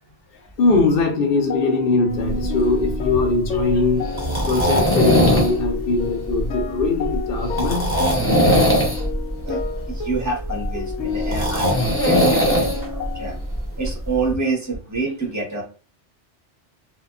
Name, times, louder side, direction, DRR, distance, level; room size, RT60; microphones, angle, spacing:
voice 1, 0.6-4.1 4.5-8.0, left 3 dB, 60° left, 3 dB, 0.8 m, -21 dB
sound 1, 1.3-13.4, left 5 dB, 85° left, 0.9 m, -30 dB
sound 2, 2.2-14.3, equal, 15° left, 0.5 m, -21 dB
voice 2, 9.9-13.4 13.8-15.6, right 3 dB, 15° right, -2 dB, 0.7 m, -27 dB
2.7 x 2.2 x 2.4 m, 0.37 s
omnidirectional pair, 1.2 m